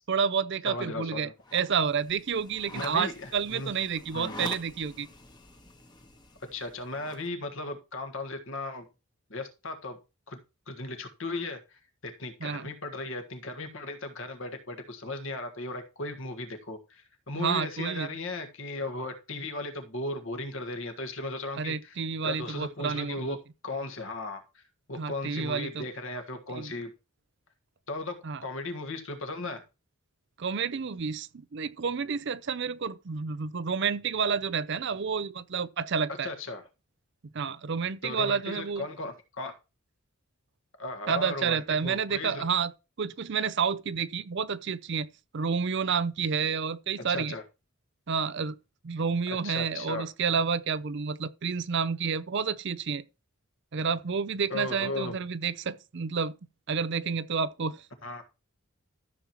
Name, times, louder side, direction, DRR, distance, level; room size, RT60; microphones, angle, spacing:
voice 1, 0.1-5.1 12.4-12.7 17.3-18.1 21.6-23.3 24.9-25.8 26.6-26.7 28.2-28.4 30.4-36.3 37.3-38.9 41.1-42.7 43.0-45.1 45.3-47.3 48.1-48.6 48.8-53.0 53.7-56.3 56.7-57.9, right 6 dB, 55° right, 0.5 m, -30 dB
voice 2, 0.6-1.3 2.7-3.7 4.1-4.4 6.5-8.9 9.3-10.0 10.3-10.4 10.7-22.0 22.2-23.4 23.6-24.6 24.9-26.9 27.9-28.1 28.4-29.6 36.2-36.7 38.0-39.5 40.8-42.4 47.1-47.4 49.3-50.1 54.5-55.1 58.0-58.2, left 2 dB, 60° left, 1.6 m, -36 dB
sound 1, 1.4-7.3, left 2 dB, 20° left, 1.1 m, -46 dB
13.5 x 7.1 x 3.0 m
head